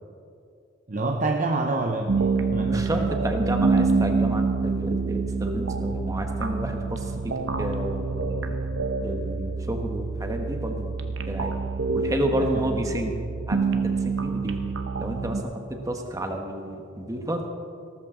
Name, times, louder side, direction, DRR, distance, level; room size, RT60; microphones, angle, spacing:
voice 1, 0.9-3.1 12.4-13.0, right 2 dB, 40° right, 2 dB, 0.7 m, -28 dB
sound 1, 2.1-15.4, right 4 dB, 70° right, 0.9 m, -27 dB
voice 2, 2.6-8.6 9.0-10.9 11.2-11.5 11.9-13.2 13.5-14.6 15.0-17.5, right 1 dB, 15° right, 3 dB, 1.2 m, -31 dB
18.0 x 13.0 x 3.8 m, 2.6 s
head